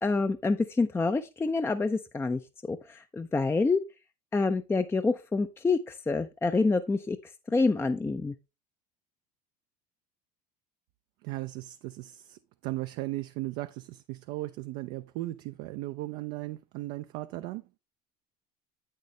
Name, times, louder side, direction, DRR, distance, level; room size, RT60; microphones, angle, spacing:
voice 1, 0.0-3.8 4.3-8.3, left 3 dB, 10° left, 0.5 m, -27 dB
voice 2, 11.2-17.6, right 18 dB, 50° right, 0.5 m, -37 dB
8.3 x 6.6 x 3.2 m
figure-of-eight pair, 70°, 21 cm